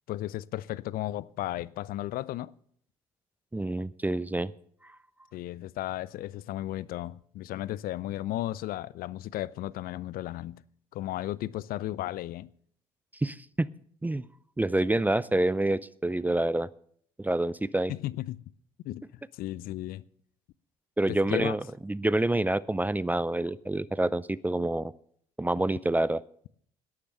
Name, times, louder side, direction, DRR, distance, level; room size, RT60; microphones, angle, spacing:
voice 1, 0.1-2.5 5.3-10.6 10.9-12.5 17.9-18.4 18.8-19.0 19.3-20.0 21.1-21.6, left 14 dB, 60° left, 0.5 m, -34 dB
voice 2, 3.5-4.5 13.2-13.7 14.0-14.2 14.6-16.7 17.2-17.9 21.0-24.9 25.4-26.2, right 1 dB, 10° right, 0.5 m, -27 dB
11.5 x 10.0 x 6.6 m
hypercardioid pair, 55°, 17 cm